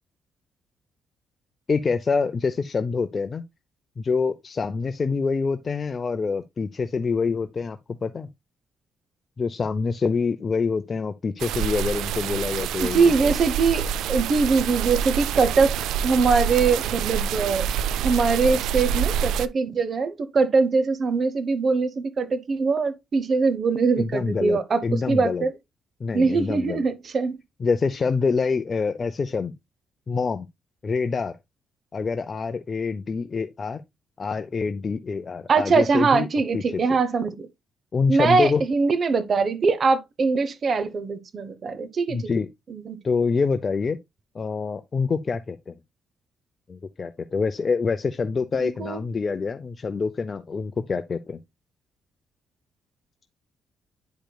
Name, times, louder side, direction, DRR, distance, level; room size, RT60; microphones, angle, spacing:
voice 1, 1.7-3.4 4.0-8.3 9.4-13.1 24.0-25.4 26.0-26.8 27.6-29.5 30.1-30.5 30.8-31.4 31.9-33.8 34.2-36.3 36.5-36.8 37.9-38.6 42.1-42.5 43.0-44.0 44.3-45.8 46.7-51.4, left 4 dB, 35° left, 0.6 m, -26 dB
sound 1, 11.4-19.5, right 8 dB, 85° right, 0.3 m, -27 dB
voice 2, 12.8-15.8 16.0-17.7 18.0-25.5 26.1-27.4 35.5-37.5 38.1-42.3 42.7-43.0 48.6-49.0, right 4 dB, 45° right, 0.9 m, -22 dB
10.0 x 5.1 x 2.3 m
cardioid pair, 90°, 0 cm